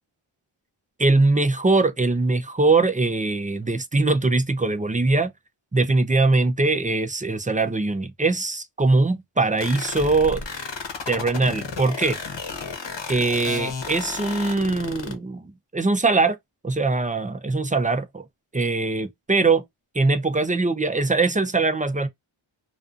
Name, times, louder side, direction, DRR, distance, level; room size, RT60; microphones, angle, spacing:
voice 1, 1.0-5.3 5.7-10.4 11.1-12.2 13.1-16.4 16.6-18.2 18.5-19.6 19.9-22.1, right 3 dB, 20° right, 0.3 m, -22 dB
sound 1, 9.6-15.1, left 4 dB, 60° left, 0.9 m, -32 dB
2.4 x 2.4 x 2.3 m
wide cardioid pair, 60°, 50 cm